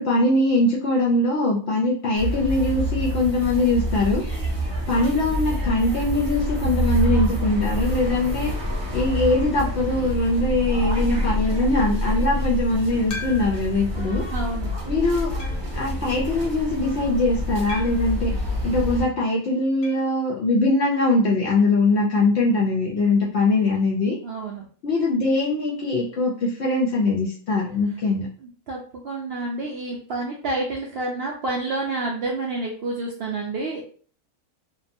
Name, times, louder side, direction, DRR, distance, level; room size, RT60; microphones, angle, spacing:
voice 1, 0.0-4.2 4.9-8.5 8.9-14.2 14.9-15.3 15.7-18.3 18.6-24.2 24.8-28.3, left 2 dB, 65° left, -3 dB, 0.7 m, -22 dB
sound 1, 2.1-19.0, equal, 30° right, 0.5 m, -27 dB
sound 2, 13.1-13.8 14.4-14.5 15.4-15.8 17.7-18.2 19.8-20.1 20.4-20.5 20.7-20.8 22.8-22.9, left 3 dB, 80° left, 1.1 m, -38 dB
voice 2, 14.3-14.7 24.2-24.6 28.4-33.8, right 2 dB, 75° right, -1 dB, 0.5 m, -29 dB
2.7 x 2.2 x 2.5 m, 0.44 s
omnidirectional pair, 1.6 m